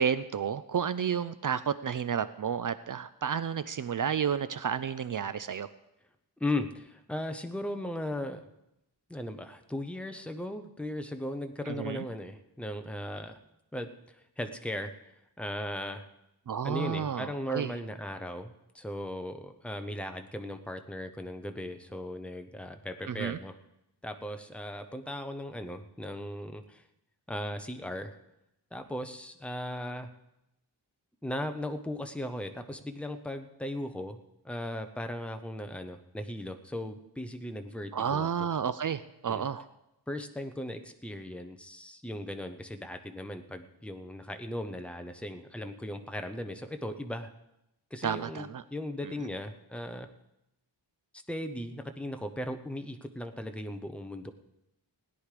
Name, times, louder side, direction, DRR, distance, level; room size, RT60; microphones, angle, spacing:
voice 1, 0.0-5.7 11.7-12.0 16.5-17.7 23.1-23.4 37.9-39.6 48.0-48.6, right 7 dB, 50° right, 13 dB, 0.4 m, -31 dB
voice 2, 6.4-8.5 9.1-13.4 13.7-14.9 15.4-16.0 16.6-23.6 24.0-26.8 27.3-28.1 28.7-30.1 31.2-34.2 34.4-38.5 39.3-39.4 40.1-47.3 47.9-50.1 51.3-54.3, left 1 dB, 5° left, 6 dB, 0.7 m, -37 dB
17.0 x 9.9 x 5.0 m, 0.88 s
wide cardioid pair, 175°, 42 cm